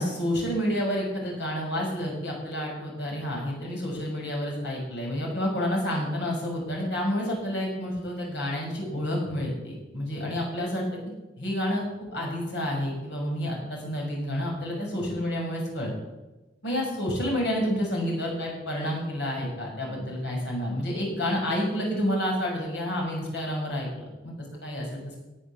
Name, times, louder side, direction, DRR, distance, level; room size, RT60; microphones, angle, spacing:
voice 1, 0.0-11.0 11.4-15.9 16.6-24.3 24.6-25.2, equal, 70° left, -2 dB, 6.7 m, -29 dB
18.5 x 8.4 x 7.3 m, 1.1 s
head